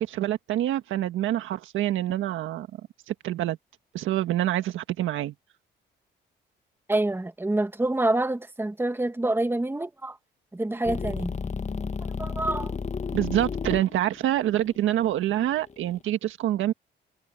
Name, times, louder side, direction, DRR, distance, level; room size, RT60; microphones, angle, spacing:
voice 1, 0.0-2.7 3.1-3.6 3.9-5.3 13.1-16.7, right 12 dB, 85° right, 1.6 m, -26 dB
voice 2, 6.9-10.2 10.5-11.4 12.2-12.8, right 2 dB, 10° right, 1.8 m, -27 dB
sound 1, 10.8-16.0, left 5 dB, 35° left, 1.7 m, -33 dB
cardioid pair, 90°, 20 cm